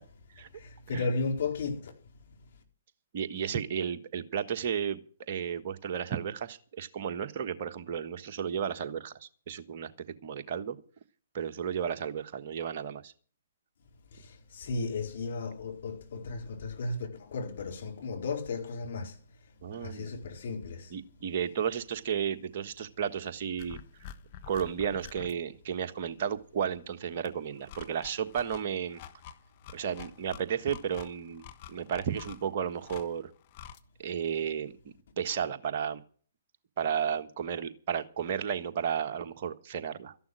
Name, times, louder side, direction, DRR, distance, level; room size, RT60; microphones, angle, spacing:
voice 1, 0.5-1.9 14.1-21.0, left 3 dB, 55° left, 4.3 m, -35 dB
voice 2, 3.1-9.9 10.2-10.8 11.3-13.1 19.6-20.1 20.9-23.8 24.5-29.0 29.7-31.4 31.7-33.3 34.0-34.7 35.2-36.0 36.8-40.1, right 8 dB, 45° right, 1.4 m, -33 dB
sound 1, 23.6-25.3 27.2-33.8, left 9 dB, 40° left, 1.2 m, -48 dB
13.5 x 11.5 x 6.3 m
figure-of-eight pair, 125°, 0 cm